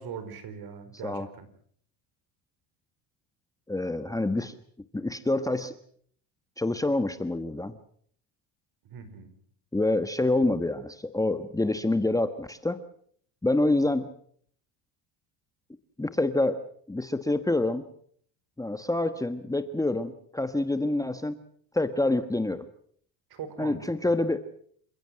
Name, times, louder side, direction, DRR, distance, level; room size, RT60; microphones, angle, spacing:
voice 1, 0.0-1.5 8.8-9.3 23.3-24.2, right 7 dB, 55° right, 11 dB, 4.9 m, -41 dB
voice 2, 3.7-4.6 4.9-5.7 6.6-7.7 9.7-12.8 13.4-14.1 16.0-16.6 16.9-17.8 18.6-21.4 21.7-22.6 23.6-24.4, left 2 dB, 10° left, 10 dB, 1.2 m, -27 dB
28.0 x 15.5 x 7.7 m, 0.62 s
supercardioid pair, 105°, 43 cm